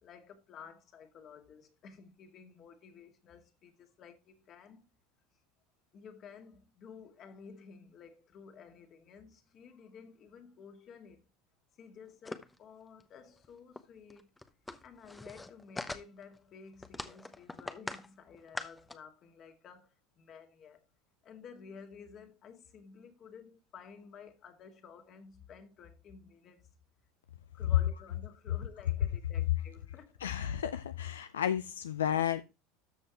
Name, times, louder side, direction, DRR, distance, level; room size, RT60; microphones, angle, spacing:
voice 1, 0.0-4.8 5.9-11.3 11.8-14.3 14.8-20.8 21.2-26.7 27.5-30.3, left 6 dB, 45° left, 2.0 m, -53 dB
sound 1, 12.2-12.6 13.0-13.1 13.4-13.5 13.8-13.9 14.1-16.4 16.8-18.1 18.3-18.9, left 2 dB, 10° left, 0.9 m, -42 dB
voice 2, 30.2-32.4, left 9 dB, 85° left, 0.4 m, -32 dB
13.5 x 5.4 x 2.9 m
hypercardioid pair, 85°, 0 cm